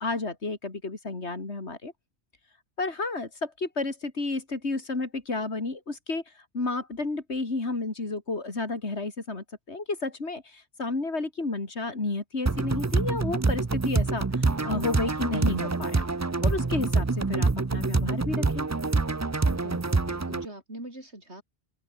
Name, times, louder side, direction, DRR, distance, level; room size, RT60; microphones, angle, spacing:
voice 1, 0.0-1.9 2.8-16.0 16.4-18.7, left 3 dB, 75° left, 3.7 m, -31 dB
sound 1, 12.5-20.5, right 3 dB, 20° right, 0.5 m, -26 dB
voice 2, 19.5-21.4, right 1 dB, 75° right, 8.1 m, -43 dB
open air
omnidirectional pair, 1.1 m